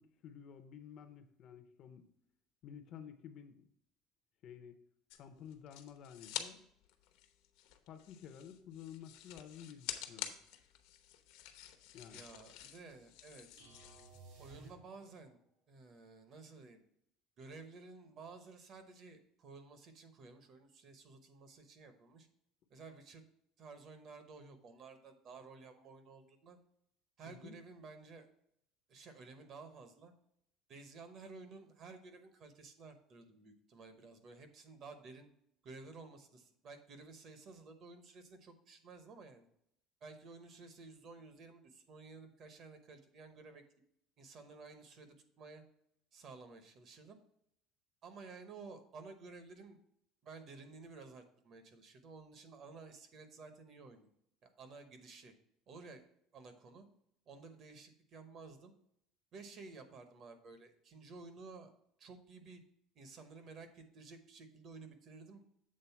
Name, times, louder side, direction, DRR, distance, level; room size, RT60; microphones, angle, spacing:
voice 1, 0.0-2.1 2.6-3.6 4.4-4.8 5.2-6.6 7.9-10.4 11.9-12.2 27.3-27.6, left 8 dB, 40° left, 8 dB, 0.6 m, -52 dB
sound 1, 5.1-6.5 6.8-14.2, left 11 dB, 65° left, 0.8 m, -48 dB
voice 2, 12.1-13.6 14.4-15.4 15.7-16.8 17.4-22.3 22.7-23.2 23.6-26.6 27.2-28.3 28.9-30.1 30.7-35.3 35.6-39.5 40.0-43.6 44.2-45.6 46.1-47.2 48.0-49.8 50.2-54.1 54.4-55.3 55.7-56.0 56.3-56.9 57.3-58.7 59.3-61.7 62.0-62.6 62.9-65.4, right 4 dB, 35° right, 8 dB, 0.9 m, -53 dB
sound 2, 13.6-15.3, right 3 dB, 70° right, 3.3 m, -57 dB
7.5 x 3.8 x 5.7 m, 0.72 s
cardioid pair, 175°, 0 cm